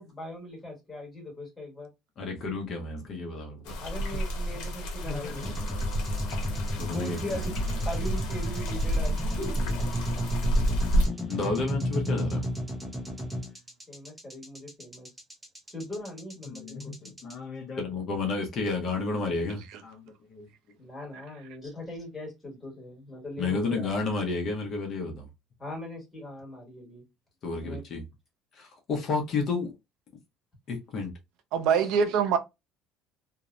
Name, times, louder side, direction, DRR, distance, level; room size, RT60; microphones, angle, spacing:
voice 1, 0.0-1.9 3.8-5.6 6.6-9.7 13.9-15.1 15.7-17.1 20.8-23.9 25.6-27.0 27.6-27.8 31.7-31.9, left 1 dB, 10° left, 1.2 m, -40 dB
voice 2, 2.2-3.8 5.1-5.4 6.8-7.4 9.3-9.4 11.3-12.4 16.5-20.5 23.4-25.3 27.4-28.0 28.5-29.7 30.7-31.1, left 3 dB, 35° left, 0.6 m, -31 dB
sound 1, 3.7-11.1, equal, 80° left, 0.7 m, -29 dB
sound 2, 5.4-17.3, equal, 5° right, 0.5 m, -34 dB
voice 3, 31.5-32.4, right 7 dB, 65° right, 0.4 m, -24 dB
2.7 x 2.0 x 2.4 m
cardioid pair, 175°, 0 cm